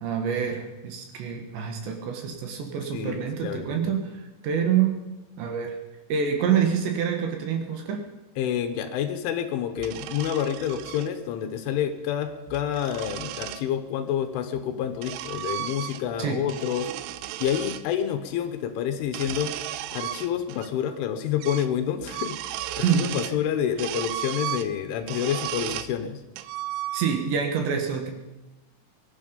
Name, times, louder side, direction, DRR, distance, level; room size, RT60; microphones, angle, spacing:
voice 1, 0.0-5.0 5.4-5.8 6.1-8.0 16.2-16.4 22.7-23.1 26.9-28.1, right 7 dB, 65° right, 3 dB, 3.6 m, -26 dB
voice 2, 2.9-4.0 8.4-16.9 17.4-26.2, left 9 dB, 75° left, 8 dB, 3.3 m, -28 dB
sound 1, 9.8-11.1 12.3-13.7 14.6-16.2 16.5-17.8 19.0-20.7 21.0-21.1 21.4-21.7 22.0-23.4 23.8-25.9 26.4-27.3, right 13 dB, 80° right, 2.9 m, -35 dB
22.5 x 12.0 x 5.3 m, 1.0 s
omnidirectional pair, 5.9 m